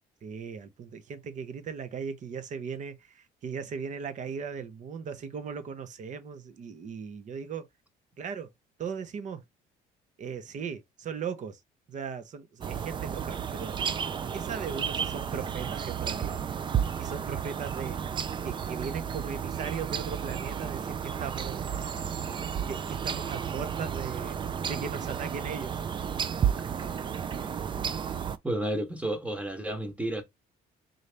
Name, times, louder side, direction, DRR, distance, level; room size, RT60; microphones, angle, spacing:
voice 1, 0.2-7.6 8.2-8.5 8.8-9.4 10.2-11.6 11.9-13.8 14.3-16.5 17.0-18.0 18.4-21.9 22.7-24.4 24.7-25.8, right 6 dB, 45° right, 0.8 m, -38 dB
sound 1, 12.6-28.4, right 7 dB, 30° right, 0.4 m, -32 dB
voice 2, 28.4-30.2, right 1 dB, 10° right, 1.0 m, -31 dB
3.9 x 2.7 x 3.3 m
cardioid pair, 110°, 17 cm